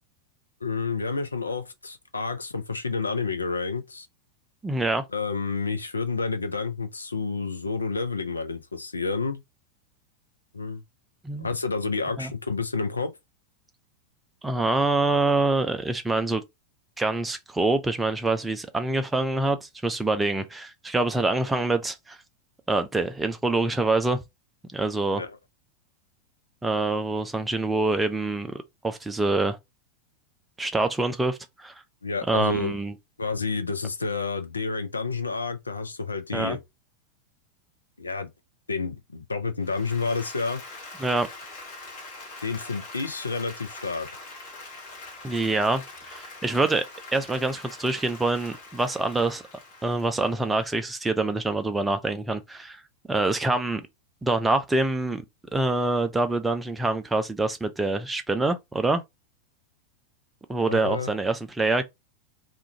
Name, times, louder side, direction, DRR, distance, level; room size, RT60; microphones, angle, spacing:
voice 1, 0.6-4.1 5.1-9.4 10.5-10.8 11.4-13.1 25.1-25.4 32.0-32.7 33.2-36.6 38.0-38.3 38.7-40.6 42.4-44.1 60.7-61.1, left 4 dB, 80° left, 0.4 m, -29 dB
voice 2, 4.6-5.0 11.2-11.5 12.2-12.3 14.4-16.4 17.0-22.2 22.7-24.2 24.7-25.2 26.6-29.6 30.6-31.7 32.3-32.9 36.3-36.6 41.0-41.3 45.2-46.8 47.1-49.4 49.8-52.8 53.1-53.8 54.2-55.2 55.5-59.0 60.5-61.8, right 2 dB, 10° right, 0.4 m, -25 dB
Applause, 39.6-51.0, left 2 dB, 45° left, 1.0 m, -43 dB
2.4 x 2.2 x 2.7 m
figure-of-eight pair, 90°, 0 cm